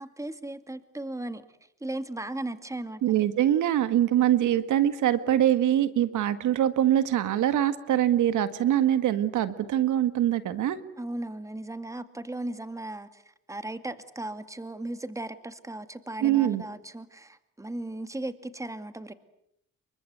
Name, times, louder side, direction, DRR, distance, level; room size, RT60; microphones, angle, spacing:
voice 1, 0.0-1.4 1.8-3.0 11.0-19.1, right 1 dB, 10° right, 10 dB, 2.2 m, -36 dB
voice 2, 3.0-10.8 16.2-16.6, right 11 dB, 80° right, 12 dB, 1.8 m, -23 dB
29.5 x 23.5 x 8.2 m, 0.77 s
cardioid pair, 90°, 30 cm